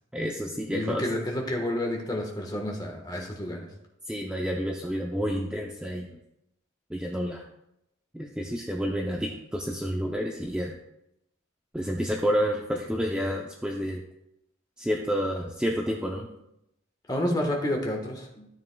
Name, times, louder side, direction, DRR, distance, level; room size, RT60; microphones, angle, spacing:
voice 1, 0.1-1.0 4.1-6.1 6.9-7.4 8.1-10.8 11.7-14.0 14.8-16.3, equal, 5° right, 0 dB, 0.5 m, -29 dB
voice 2, 0.7-3.7 17.1-18.5, left 1 dB, 20° left, 1 dB, 1.3 m, -30 dB
12.5 x 7.2 x 2.3 m, 0.84 s
head